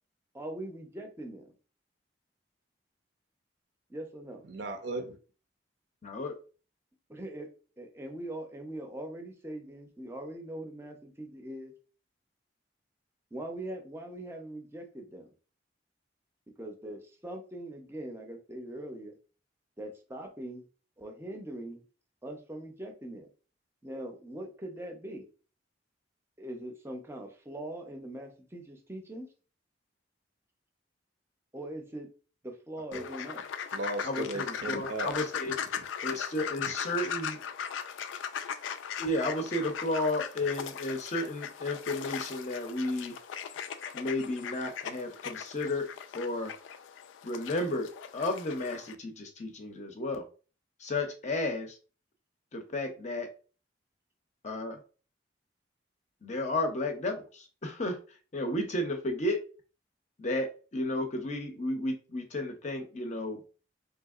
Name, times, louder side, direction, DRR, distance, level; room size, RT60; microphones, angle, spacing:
voice 1, 0.3-1.6 3.9-4.5 7.1-7.5 7.8-11.7 13.3-15.3 16.6-19.1 19.8-20.6 21.0-21.8 22.2-23.3 23.8-25.3 26.4-29.3 31.5-32.1 32.4-33.5, right 1 dB, 15° right, 0.5 m, -41 dB
voice 2, 4.5-5.2 32.9-33.1 33.7-35.2 35.8-35.9, right 2 dB, 70° right, 0.6 m, -36 dB
sound 1, 32.9-49.0, left 8 dB, 90° left, 0.3 m, -39 dB
voice 3, 34.0-35.6 36.0-37.4 39.0-43.2 43.9-45.9 46.1-46.5 47.2-50.2 50.8-51.8 52.5-53.3 54.4-54.8 56.2-58.0 58.3-59.4 60.2-63.5, left 1 dB, 40° left, 0.5 m, -33 dB
3.5 x 2.8 x 2.3 m
head